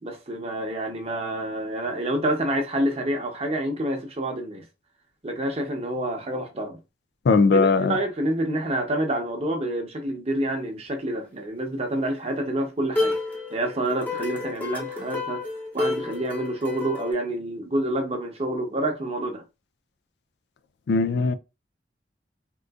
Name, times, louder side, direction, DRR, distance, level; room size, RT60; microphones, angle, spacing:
voice 1, 0.0-4.6 5.2-6.8 7.5-13.2 13.5-15.4 15.7-19.4, right 1 dB, 35° right, 0.8 m, -28 dB
voice 2, 7.3-8.0 20.9-21.4, left 4 dB, 70° left, 0.3 m, -19 dB
sound 1, 12.9-17.1, left 3 dB, 10° left, 0.7 m, -30 dB
3.7 x 2.4 x 2.3 m
head